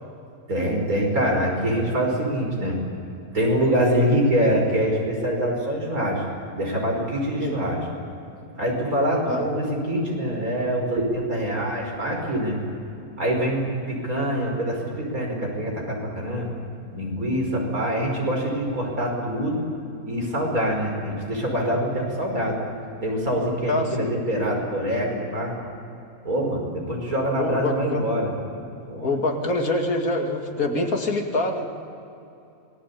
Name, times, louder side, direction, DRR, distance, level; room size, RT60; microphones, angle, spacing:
voice 1, 0.5-2.8 3.3-6.2 6.5-7.8 8.6-12.6 13.2-16.5 16.9-19.6 20.1-22.6 23.0-25.5 26.2-28.3 28.9-29.2, equal, 75° right, 0 dB, 6.0 m, -24 dB
voice 2, 23.7-24.1 27.4-28.0 29.0-31.7, left 2 dB, 75° left, 2 dB, 3.0 m, -25 dB
27.0 x 20.5 x 8.6 m, 2.8 s
omnidirectional pair, 1.5 m